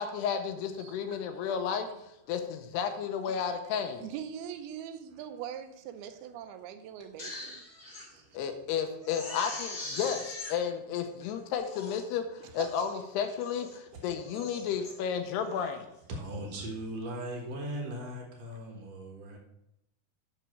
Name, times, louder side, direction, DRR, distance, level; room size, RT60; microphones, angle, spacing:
voice 1, 0.0-1.9 2.3-4.1 8.3-15.9, left 7 dB, 85° left, 7 dB, 2.9 m, -32 dB
voice 2, 0.8-1.2 7.3-8.4 9.5-9.7 15.6-15.7 16.1-19.4, right 1 dB, 60° right, 1 dB, 1.9 m, -40 dB
voice 3, 4.0-7.6 12.6-12.7, right 9 dB, 80° right, 9 dB, 2.5 m, -41 dB
Crying sobbing, 7.0-8.1 8.5-8.6 9.0-10.5 11.2-11.3 11.6-12.0 12.5-12.9 13.4-13.8 14.2-14.9 15.4-15.7, left 2 dB, 25° left, 2.0 m, -42 dB
8.4 x 6.0 x 6.1 m, 0.84 s
omnidirectional pair, 4.8 m